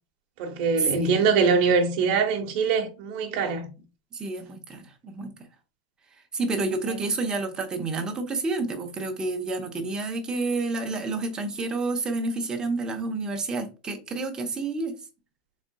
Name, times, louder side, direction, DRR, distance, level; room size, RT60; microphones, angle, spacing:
voice 1, 0.4-3.7 6.9-7.0, right 5 dB, 45° right, 1.1 m, -23 dB
voice 2, 4.1-5.3 6.3-14.9, right 3 dB, 15° right, 0.8 m, -29 dB
4.2 x 3.6 x 2.2 m
supercardioid pair, 150°, 5 cm